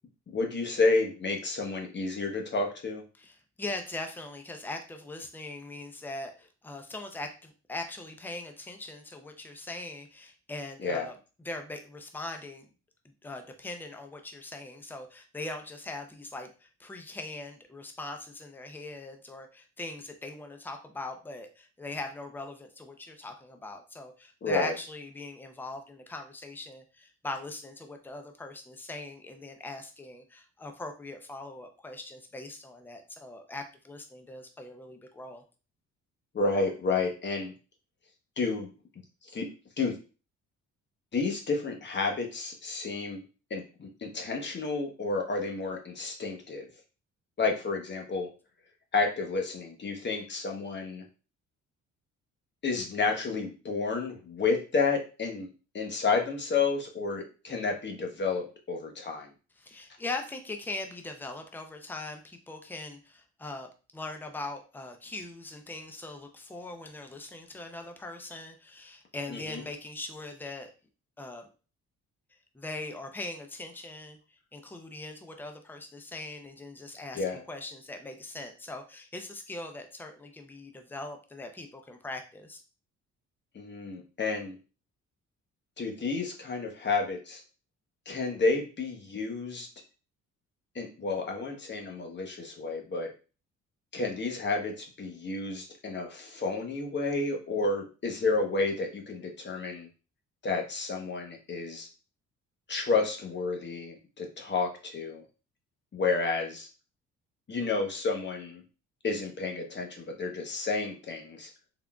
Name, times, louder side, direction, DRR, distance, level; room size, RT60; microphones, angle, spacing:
voice 1, 0.3-3.0 10.8-11.1 24.4-24.7 36.3-37.5 38.4-38.7 39.3-39.5 39.8-40.0 41.1-43.2 43.5-46.7 47.4-48.3 48.9-51.0 52.6-55.5 55.7-59.3 69.3-69.6 77.1-77.4 83.5-84.5 85.8-87.4 88.1-89.7 90.7-93.1 93.9-99.9 100.4-101.9 102.7-105.2 105.9-106.7 107.5-108.6 109.0-111.5, left 3 dB, 35° left, 2 dB, 1.0 m, -30 dB
voice 2, 3.1-11.1 11.4-12.7 13.2-35.4 59.6-70.7 71.2-71.5 72.5-82.6, left 2 dB, 5° left, 5 dB, 0.6 m, -41 dB
3.7 x 3.4 x 2.3 m, 0.34 s
cardioid pair, 90°, 30 cm